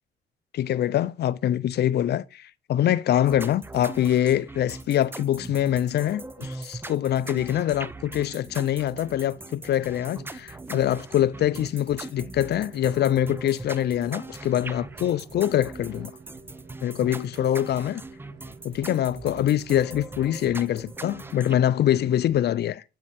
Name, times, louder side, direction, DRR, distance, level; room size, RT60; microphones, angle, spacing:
voice 1, 0.5-16.1 16.8-18.0 18.6-22.8, left 11 dB, 55° left, 0.4 m, -24 dB
sound 1, 3.3-21.5, right 2 dB, 10° right, 0.4 m, -40 dB
Rain, 9.2-22.3, right 4 dB, 60° right, 1.2 m, -51 dB
8.4 x 3.4 x 4.2 m
cardioid pair, 90°, 20 cm